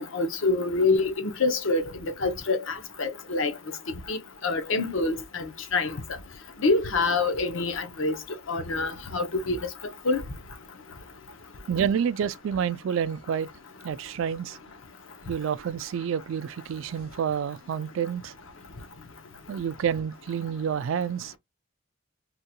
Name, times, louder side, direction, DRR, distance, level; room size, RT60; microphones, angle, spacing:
voice 1, 0.0-3.5 4.1-4.2 4.4-5.9 6.6-8.2 8.5-9.6 10.0-10.2, left 3 dB, 70° left, 0.7 m, -26 dB
voice 2, 11.7-13.5 13.8-14.6 15.3-18.3 19.5-21.4, right 8 dB, 70° right, 0.3 m, -28 dB
3.6 x 2.2 x 2.8 m
head